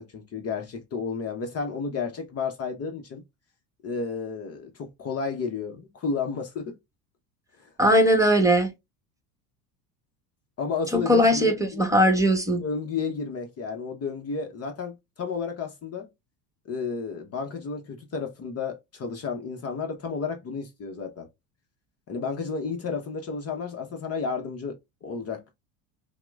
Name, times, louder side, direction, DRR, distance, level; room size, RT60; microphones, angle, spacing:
voice 1, 0.0-3.2 3.8-6.8 7.6-7.7 10.6-11.8 12.6-16.1 16.6-21.3 22.1-25.5, left 5 dB, 35° left, 0.8 m, -32 dB
voice 2, 7.8-8.7 10.9-12.6, equal, 10° right, 1.0 m, -20 dB
5.7 x 2.1 x 2.3 m
supercardioid pair, 100°, 42 cm